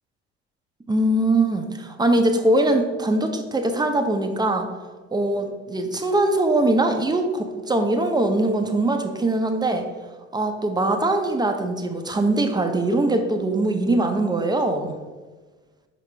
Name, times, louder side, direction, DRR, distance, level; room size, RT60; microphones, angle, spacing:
voice 1, 0.9-4.7 5.1-9.9 10.3-15.0, right 2 dB, 10° right, 6 dB, 0.7 m, -22 dB
5.8 x 4.9 x 3.3 m, 1.3 s
hypercardioid pair, 65°, 34 cm